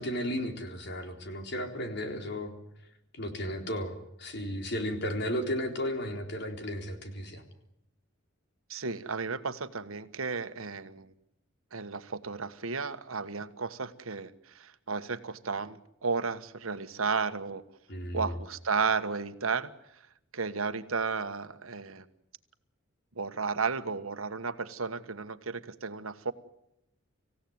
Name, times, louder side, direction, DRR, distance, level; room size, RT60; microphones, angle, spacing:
voice 1, 0.0-2.5 3.1-7.4 17.9-18.3, equal, 55° left, 5 dB, 3.9 m, -34 dB
voice 2, 8.7-11.1 11.7-17.6 18.1-19.7 20.3-22.0 23.1-26.3, right 5 dB, 85° right, 11 dB, 1.4 m, -33 dB
26.0 x 16.5 x 9.5 m, 0.84 s
head